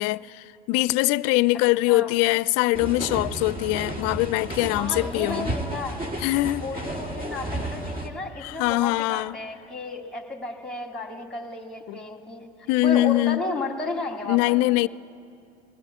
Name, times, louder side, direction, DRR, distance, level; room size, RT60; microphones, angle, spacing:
voice 1, 0.0-5.5 6.2-6.6 8.4-9.4 11.9-12.0 12.7-13.4 14.3-14.9, left 19 dB, 60° left, 0.5 m, -23 dB
sound 1, 2.7-8.1, right 1 dB, 30° right, 2.1 m, -32 dB
voice 2, 4.7-6.0 6.6-14.5, left 2 dB, ahead, 2.5 m, -33 dB
20.0 x 15.5 x 8.5 m
hypercardioid pair, 80°, 29 cm